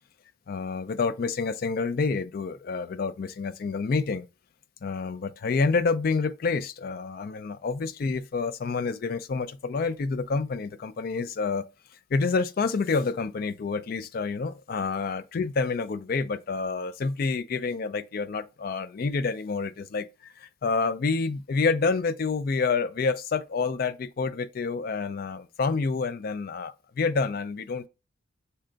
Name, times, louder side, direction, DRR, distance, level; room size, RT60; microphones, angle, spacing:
voice 1, 0.5-4.3 4.8-11.6 12.1-27.9, left 4 dB, 45° left, 0.3 m, -28 dB
5.5 x 3.8 x 2.2 m
head